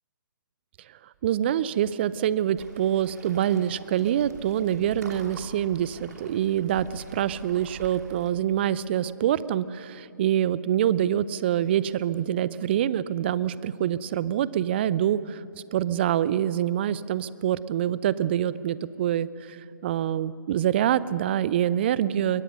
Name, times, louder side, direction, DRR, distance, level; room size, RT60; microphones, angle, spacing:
voice 1, 1.2-15.4 15.7-22.4, right 11 dB, 30° right, 18 dB, 0.5 m, -25 dB
Waves surf, 2.6-8.3, right 3 dB, 55° right, 2.8 m, -44 dB
22.5 x 19.0 x 6.7 m, 2.6 s
figure-of-eight pair, 135°, 11 cm